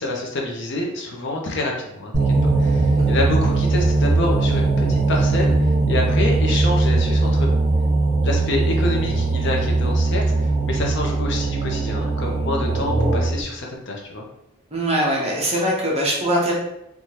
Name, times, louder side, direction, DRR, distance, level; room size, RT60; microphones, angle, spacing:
voice 1, 0.0-2.3 2.6-7.5 8.2-14.2, left 2 dB, 50° left, 0 dB, 0.5 m, -27 dB
sound 1, 2.1-13.4, right 3 dB, 55° right, 0.9 m, -20 dB
voice 2, 14.7-16.5, right 1 dB, 25° right, -3 dB, 0.5 m, -22 dB
2.7 x 2.3 x 3.1 m, 0.82 s
head